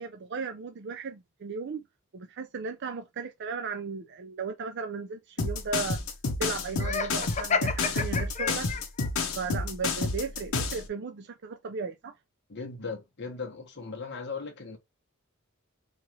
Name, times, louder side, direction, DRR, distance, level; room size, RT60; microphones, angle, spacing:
voice 1, 0.0-1.8 2.1-6.0 6.4-8.7 9.4-12.1, right 5 dB, 55° right, 0.5 m, -36 dB
sound 1, 5.4-10.8, left 3 dB, 80° left, 0.9 m, -29 dB
Laughter, 6.8-9.1, left 5 dB, 35° left, 0.5 m, -30 dB
voice 2, 12.5-14.8, left 4 dB, 55° left, 1.2 m, -38 dB
4.7 x 2.5 x 3.1 m
head